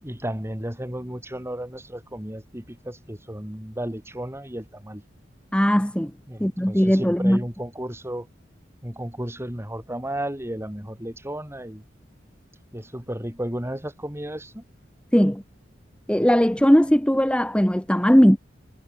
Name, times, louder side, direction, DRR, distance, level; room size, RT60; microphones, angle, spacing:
voice 1, 0.0-5.0 6.3-8.3 8.8-11.8 12.7-14.6, right 1 dB, 15° right, 5.0 m, -33 dB
voice 2, 5.5-6.1 6.4-7.4 15.1-15.4 16.1-18.4, equal, 5° left, 1.5 m, -18 dB
head